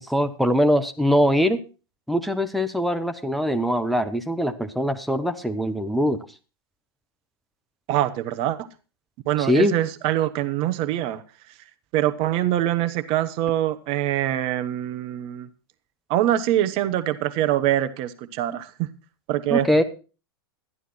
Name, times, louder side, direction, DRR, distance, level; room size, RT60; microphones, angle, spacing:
voice 1, 0.1-1.6 2.1-6.2 9.4-9.7 19.5-19.8, equal, ahead, 7 dB, 1.0 m, -22 dB
voice 2, 7.9-8.7 9.3-11.2 11.9-15.5 16.1-18.9 19.3-19.7, right 13 dB, 45° right, 11 dB, 1.0 m, -24 dB
12.5 x 11.0 x 4.3 m, 0.33 s
figure-of-eight pair, 95°, 13 cm